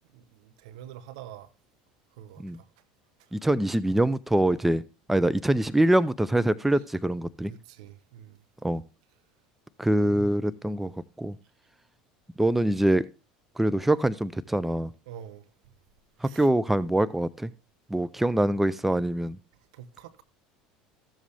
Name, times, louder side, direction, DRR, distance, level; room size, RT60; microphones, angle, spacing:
voice 1, 0.1-1.5 2.2-2.7 7.5-8.4 9.9-10.3 15.1-15.4 16.2-16.5 19.7-20.2, right 10 dB, 70° right, 0.9 m, -45 dB
voice 2, 3.3-4.8 5.1-7.5 8.6-8.8 9.8-10.9 11.2-11.4 12.4-13.0 13.6-14.9 16.2-17.5 17.9-19.4, right 1 dB, 5° right, 0.5 m, -24 dB
14.0 x 7.3 x 3.3 m
hypercardioid pair, 80°, 3 cm